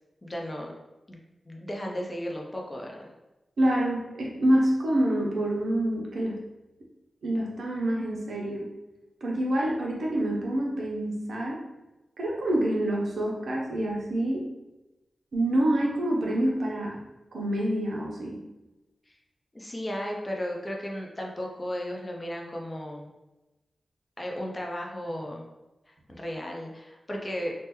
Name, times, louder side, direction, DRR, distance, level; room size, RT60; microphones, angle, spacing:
voice 1, 0.2-0.7 1.1-1.2 1.5-3.1 19.1-19.2 19.5-23.1 24.2-25.4 25.9-27.5, equal, 30° left, 0 dB, 0.6 m, -35 dB
voice 2, 3.6-6.4 7.2-8.7 9.2-11.6 12.2-14.5 15.3-17.0 17.3-18.4, right 1 dB, 85° right, -2 dB, 0.6 m, -27 dB
3.4 x 2.1 x 3.0 m, 1.0 s
cardioid pair, 65°, 0 cm